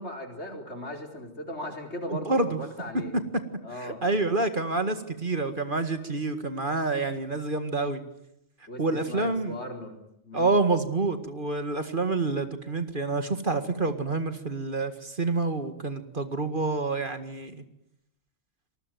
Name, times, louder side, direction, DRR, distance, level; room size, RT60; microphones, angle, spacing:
voice 1, 0.0-3.1 3.6-4.0 8.7-10.0 10.2-10.5, left 1 dB, 65° left, 4 dB, 4.7 m, -38 dB
voice 2, 2.1-2.6 3.8-8.0 8.8-9.6 10.3-17.6, right 3 dB, 45° right, 9 dB, 2.1 m, -28 dB
26.5 x 20.5 x 9.3 m, 0.82 s
omnidirectional pair, 1.3 m